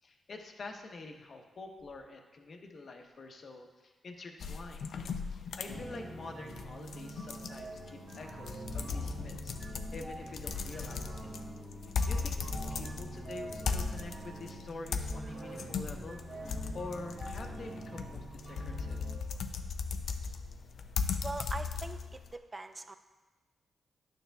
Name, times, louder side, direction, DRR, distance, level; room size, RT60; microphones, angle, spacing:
voice 1, 0.0-5.0 5.3-11.3 12.1-12.4 12.7-16.2 16.7-19.0, left 3 dB, 55° left, 3 dB, 0.9 m, -46 dB
sound 1, 4.4-22.3, left 5 dB, 75° left, 0.4 m, -38 dB
sound 2, 5.7-19.1, right 2 dB, 50° right, 1.5 m, -45 dB
voice 2, 21.2-23.0, right 2 dB, 30° right, 8 dB, 0.5 m, -41 dB
10.5 x 6.7 x 2.3 m, 1.2 s
cardioid pair, 75°, 0 cm